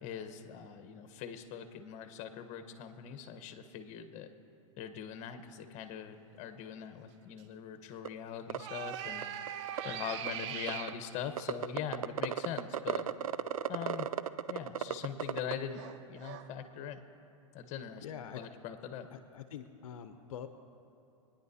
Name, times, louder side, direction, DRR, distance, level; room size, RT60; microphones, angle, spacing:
voice 1, 0.0-4.3 4.8-9.2 9.8-13.1 13.7-14.1 14.5-17.0 17.5-19.1, left 8 dB, 40° left, 9 dB, 1.1 m, -42 dB
sound 1, 7.4-7.5 8.6-11.0 15.2-15.3 15.7-16.5, right 10 dB, 55° right, 0.8 m, -41 dB
sound 2, 8.1-8.2 8.5-8.6 8.9-9.0 9.2-9.8 10.3-10.9 11.4-15.5, right 9 dB, 90° right, 0.5 m, -33 dB
voice 2, 18.0-18.4 19.1-20.5, left 9 dB, 75° left, 9 dB, 0.7 m, -45 dB
25.0 x 10.0 x 2.8 m, 3.0 s
hypercardioid pair, 110°, 18 cm